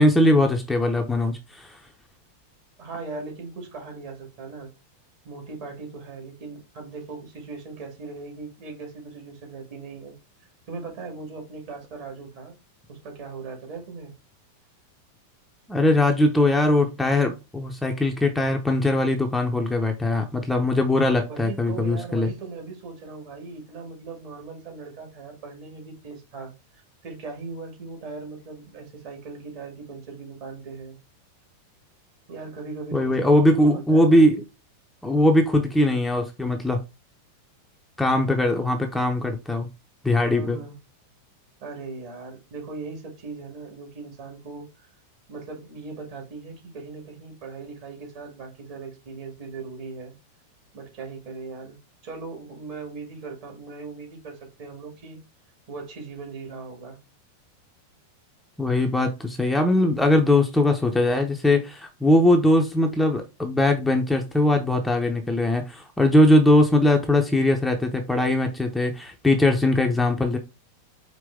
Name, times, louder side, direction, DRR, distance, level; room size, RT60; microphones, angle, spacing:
voice 1, 0.0-1.8 15.7-22.3 32.9-34.4 35.0-36.8 38.0-39.7 40.0-40.6 58.6-70.4, left 1 dB, 5° left, 0.7 m, -20 dB
voice 2, 2.8-4.7 5.2-10.2 10.7-12.6 12.9-14.1 21.3-31.0 32.3-34.4 40.3-40.8 41.6-44.9 45.3-50.1 50.7-51.8 52.0-55.2 55.7-57.0, right 4 dB, 45° right, 2.1 m, -39 dB
5.2 x 2.9 x 3.4 m
figure-of-eight pair, 90°, 0 cm